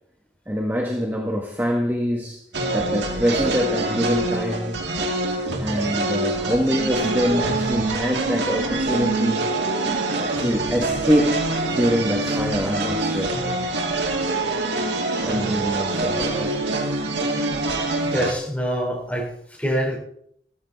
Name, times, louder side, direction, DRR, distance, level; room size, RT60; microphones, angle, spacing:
voice 1, 0.5-2.4 2.7-4.8 5.5-9.4 10.1-13.4 15.2-16.6, equal, 10° right, 0 dB, 1.5 m, -24 dB
sound 1, 2.5-18.3, right 2 dB, 85° right, 2.4 m, -25 dB
voice 2, 18.0-20.0, equal, 10° left, -2 dB, 4.1 m, -26 dB
14.5 x 14.0 x 4.1 m, 0.68 s
head